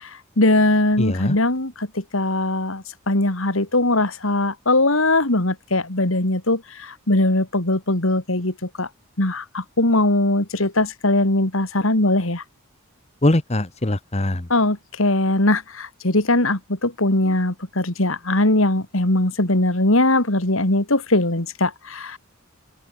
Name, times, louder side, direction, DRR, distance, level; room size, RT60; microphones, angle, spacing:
voice 1, 0.4-1.9 2.1-8.9 9.2-12.4 14.5-22.2, left 2 dB, 70° left, 3.1 m, -20 dB
voice 2, 1.0-1.4 13.2-14.4, left 1 dB, 30° left, 1.2 m, -21 dB
open air
head